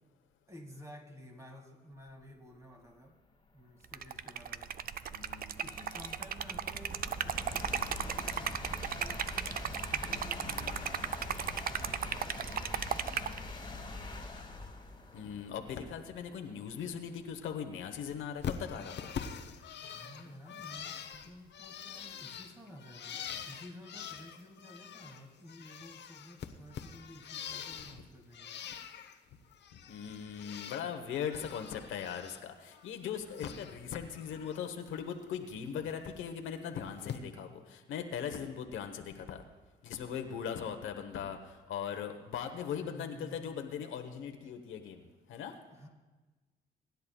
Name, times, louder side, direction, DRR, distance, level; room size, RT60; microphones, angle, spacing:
voice 1, 0.5-3.2 3.5-4.8 5.6-12.5 19.8-28.7 40.3-40.5 42.7-43.6 45.7-45.9, equal, 15° right, 2 dB, 2.1 m, -53 dB
sound 1, 3.3-3.4 4.0-18.7, left 2 dB, 25° left, 1.6 m, -45 dB
Liquid, 3.8-13.4, right 8 dB, 50° right, 0.5 m, -36 dB
voice 2, 5.1-5.6 10.1-11.0 15.1-19.1 29.9-39.4 39.8-45.6, left 8 dB, 85° left, 6 dB, 1.1 m, -40 dB
Bird, 18.4-25.2 25.5-28.0 28.3-29.2 29.5-30.8 31.2-32.4 32.7-33.8 34.2-34.6 35.9-36.0 37.0-37.2, left 8 dB, 60° left, 0.9 m, -44 dB
24.0 x 10.5 x 2.3 m, 1.3 s
cardioid pair, 90°, 20 cm